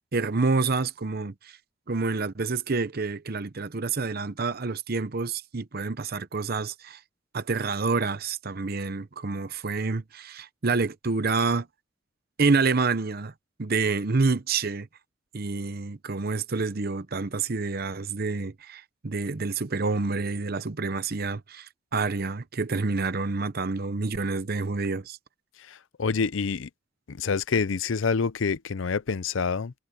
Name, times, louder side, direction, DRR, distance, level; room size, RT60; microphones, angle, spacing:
voice 1, 0.0-1.5 1.9-7.0 7.3-11.7 12.4-13.3 13.6-14.9 15.3-25.2, right 4 dB, 50° right, 0.8 m, -28 dB
voice 2, 25.6-26.7 27.1-29.7, left 5 dB, 75° left, 0.6 m, -27 dB
head